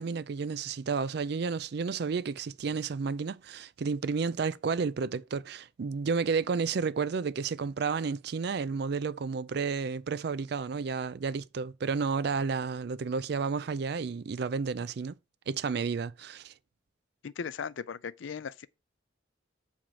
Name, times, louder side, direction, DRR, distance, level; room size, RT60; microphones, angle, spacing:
voice 1, 0.0-15.1 15.5-16.5, right 5 dB, 60° right, 0.4 m, -31 dB
voice 2, 17.2-18.7, left 6 dB, 90° left, 0.4 m, -37 dB
7.5 x 3.5 x 6.1 m
head